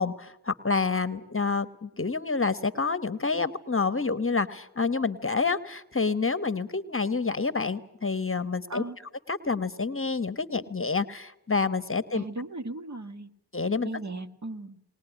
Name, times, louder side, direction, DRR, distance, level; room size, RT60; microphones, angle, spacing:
voice 1, 0.0-8.8 9.3-12.2 13.5-13.9, left 4 dB, 30° left, 13 dB, 1.1 m, -28 dB
voice 2, 12.1-13.3 13.8-14.8, right 2 dB, 40° right, 7 dB, 1.6 m, -37 dB
20.5 x 19.5 x 9.9 m, 0.79 s
cardioid pair, 60°, 42 cm